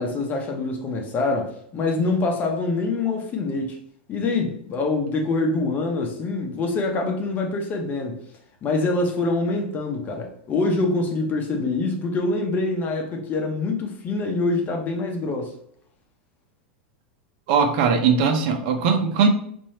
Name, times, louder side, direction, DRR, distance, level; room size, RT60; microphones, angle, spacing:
voice 1, 0.0-3.8 4.1-8.2 8.6-15.5, left 3 dB, 30° left, 0.9 m, -25 dB
voice 2, 17.5-19.3, right 6 dB, 60° right, 0.9 m, -20 dB
3.0 x 2.7 x 4.3 m
hypercardioid pair, 115°, 6 cm